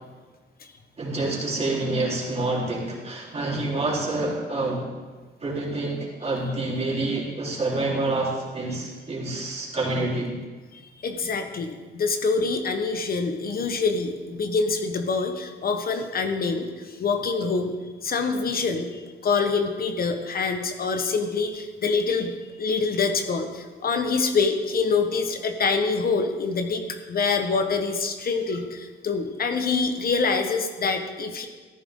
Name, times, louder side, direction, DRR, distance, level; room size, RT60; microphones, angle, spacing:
voice 1, 1.0-4.9 5.4-10.3, right 2 dB, 30° right, -4 dB, 3.6 m, -27 dB
voice 2, 10.7-17.7 18.0-31.5, left 4 dB, 50° left, 6 dB, 1.2 m, -25 dB
14.0 x 10.0 x 3.7 m, 1.3 s
cardioid pair, 90°, 20 cm